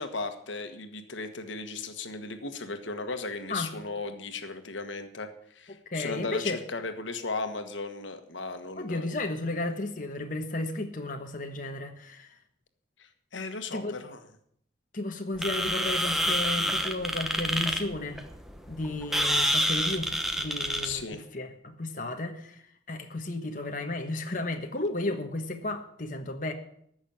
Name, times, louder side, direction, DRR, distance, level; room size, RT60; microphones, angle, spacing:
voice 1, 0.0-9.1 13.0-14.2 20.8-21.2, left 3 dB, 90° left, 7 dB, 1.4 m, -36 dB
voice 2, 5.7-6.6 8.8-12.3 13.7-13.9 14.9-18.2 18.7-20.1 20.4-26.5, left 2 dB, 45° left, 4 dB, 1.3 m, -33 dB
sound 1, 15.4-21.0, equal, ahead, 1.0 m, -28 dB
14.0 x 6.4 x 9.0 m, 0.68 s
head